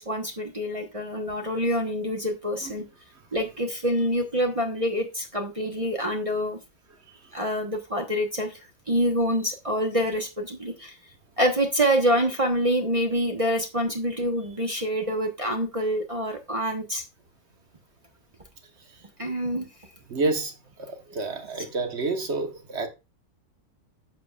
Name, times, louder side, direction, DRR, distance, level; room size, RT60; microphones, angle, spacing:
voice 1, 0.0-2.8 3.3-6.6 7.3-8.6 8.9-10.9 11.4-17.0 19.2-19.7, equal, 25° right, 0.8 m, -26 dB
voice 2, 20.1-20.5 20.8-22.9, right 3 dB, 40° right, 1.2 m, -29 dB
10.5 x 6.9 x 2.4 m
omnidirectional pair, 2.0 m